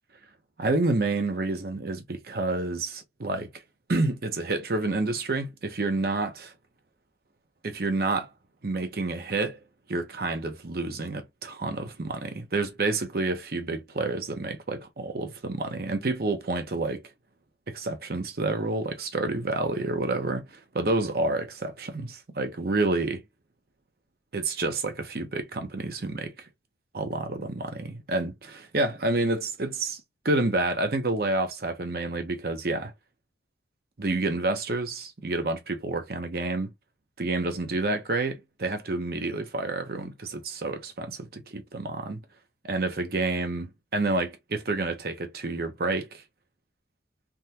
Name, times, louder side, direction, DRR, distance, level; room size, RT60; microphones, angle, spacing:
voice 1, 0.6-3.5 3.9-6.5 7.6-8.3 8.6-9.6 9.9-17.0 17.7-23.2 24.3-26.5 26.9-32.9 34.0-36.7 37.2-42.2 42.6-46.2, right 2 dB, 55° right, 0.7 m, -29 dB
3.5 x 2.2 x 2.8 m
head